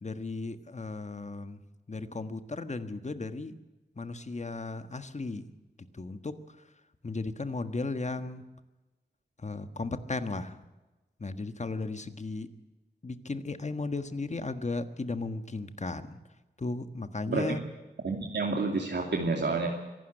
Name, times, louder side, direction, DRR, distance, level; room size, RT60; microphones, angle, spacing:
voice 1, 0.0-1.6 1.9-3.6 3.9-5.5 5.9-6.6 7.0-8.4 9.4-10.6 11.2-12.5 13.0-16.2 16.6-17.6, left 3 dB, 40° left, 10 dB, 1.5 m, -35 dB
voice 2, 17.3-17.6 18.0-19.7, right 3 dB, 80° right, 1 dB, 2.7 m, -29 dB
25.0 x 12.0 x 9.1 m, 1.1 s
wide cardioid pair, 95°, 18 cm